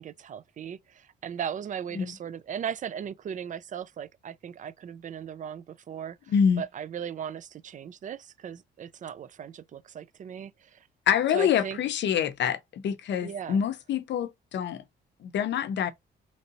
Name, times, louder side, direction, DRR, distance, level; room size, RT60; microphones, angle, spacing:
voice 1, 0.0-10.9 11.3-11.8 13.2-13.6, right 8 dB, 40° right, 0.4 m, -37 dB
voice 2, 6.3-6.6 11.1-14.8 15.2-15.9, left 8 dB, 65° left, 0.6 m, -26 dB
3.2 x 2.7 x 2.7 m
cardioid pair, 90°, 20 cm